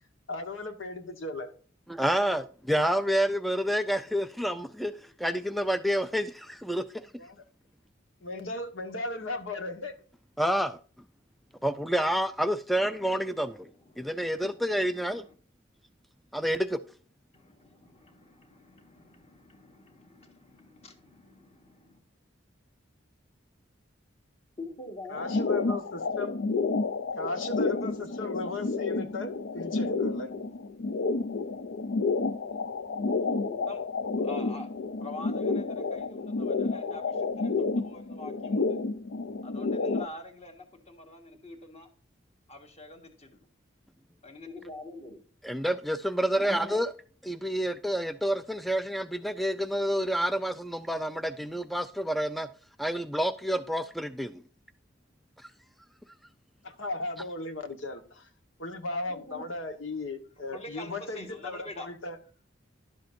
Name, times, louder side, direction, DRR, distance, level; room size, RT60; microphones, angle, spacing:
voice 1, 0.3-1.5 7.2-7.4 8.2-9.9 25.1-26.3 27.2-30.3 56.6-58.3 58.6-62.2, left 2 dB, 80° left, 1.3 m, -36 dB
voice 2, 2.0-4.9 5.2-6.8 10.4-10.8 11.6-13.7 14.0-15.2 16.3-16.8 45.4-46.9 47.3-52.5 52.8-54.4, equal, ahead, 0.3 m, -28 dB
voice 3, 12.8-15.3 17.3-22.0 24.6-25.8 27.4-27.9 32.1-33.8 34.1-34.7 35.0-38.8 39.4-41.9 42.5-43.5 44.2-45.2 46.4-46.8 59.1-59.4 60.4-61.9, left 2 dB, 35° left, 1.6 m, -46 dB
sound 1, 25.2-40.1, left 3 dB, 65° left, 0.5 m, -30 dB
11.0 x 7.7 x 2.6 m
head